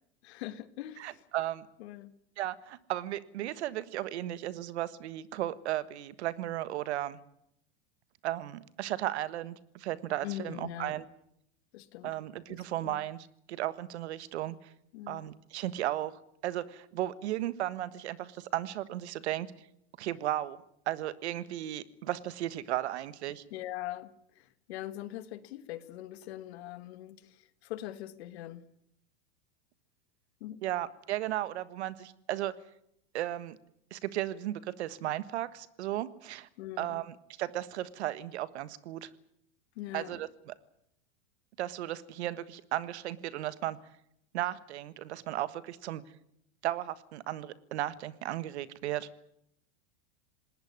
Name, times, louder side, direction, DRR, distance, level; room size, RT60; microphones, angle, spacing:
voice 1, 0.2-1.2 1.8-2.1 10.2-10.9 11.7-12.1 12.5-13.0 14.9-15.2 23.5-28.6 30.4-30.6 36.6-37.0 39.7-40.2, left 13 dB, 70° left, 14 dB, 1.7 m, -42 dB
voice 2, 1.0-1.7 2.4-7.2 8.2-11.0 12.0-14.5 15.1-16.1 16.4-19.5 20.0-20.6 20.9-23.4 30.6-32.5 33.1-33.6 33.9-36.5 36.8-39.1 39.9-40.3 41.6-43.8 44.3-46.0 46.6-49.1, right 14 dB, 75° right, 16 dB, 1.5 m, -35 dB
19.5 x 19.0 x 9.6 m, 0.75 s
supercardioid pair, 125°, 33 cm